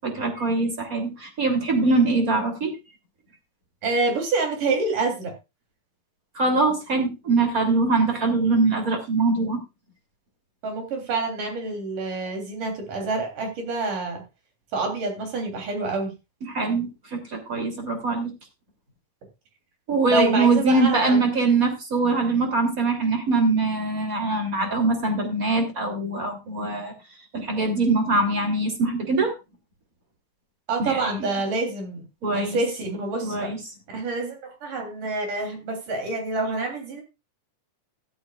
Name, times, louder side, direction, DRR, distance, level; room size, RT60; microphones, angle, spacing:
voice 1, 0.0-2.7 6.3-9.6 16.5-18.3 19.9-26.9 27.3-29.3 30.8-31.0 32.2-32.6 33.2-33.6, right 3 dB, 25° right, 4 dB, 3.3 m, -23 dB
voice 2, 3.8-5.3 10.6-14.2 14.7-16.1 20.1-21.3 30.7-32.1 32.3-33.5 33.9-37.0, right 3 dB, 75° right, 3 dB, 5.0 m, -27 dB
14.0 x 12.5 x 2.4 m, 0.26 s
omnidirectional pair, 3.7 m